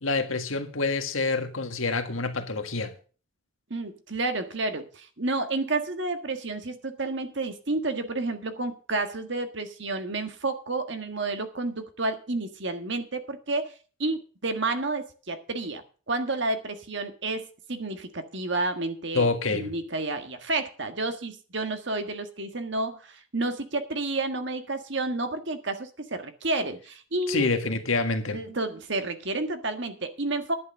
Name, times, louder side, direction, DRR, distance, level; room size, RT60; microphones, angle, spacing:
voice 1, 0.0-2.9 19.1-19.7 27.3-28.4, left 3 dB, 75° left, 1.7 m, -27 dB
voice 2, 3.7-13.6 14.0-27.5 28.3-30.6, right 2 dB, 55° right, 1.6 m, -30 dB
11.0 x 8.9 x 6.5 m
head